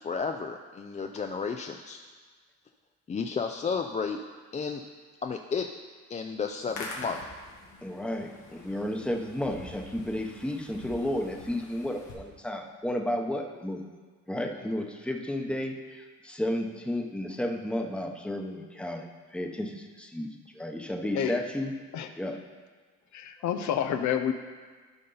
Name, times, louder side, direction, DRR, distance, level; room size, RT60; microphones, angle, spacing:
voice 1, 0.0-2.0 3.1-4.2 4.5-4.8 5.2-5.7 6.1-7.4, left 5 dB, 25° left, 5 dB, 0.4 m, -32 dB
Hands, 6.5-12.1, left 2 dB, 85° left, 1.7 m, -45 dB
voice 2, 7.8-13.8 14.3-20.3 20.5-21.7 22.2-22.4, left 1 dB, 5° left, 3 dB, 0.8 m, -32 dB
voice 3, 23.1-24.3, left 9 dB, 70° left, 7 dB, 0.6 m, -28 dB
11.5 x 5.3 x 3.9 m, 1.5 s
cardioid pair, 90°, 30 cm